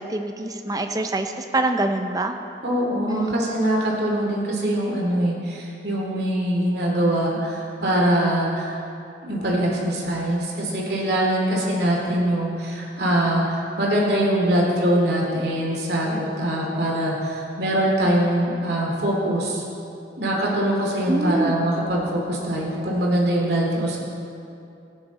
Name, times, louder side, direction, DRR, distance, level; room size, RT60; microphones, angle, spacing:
voice 1, 0.0-2.4 3.1-3.4 21.1-21.5, right 2 dB, 20° right, 6 dB, 0.6 m, -25 dB
voice 2, 2.6-8.8 9.2-19.6 20.2-24.0, right 1 dB, 60° right, -3 dB, 2.5 m, -23 dB
16.0 x 9.0 x 4.1 m, 2.6 s
head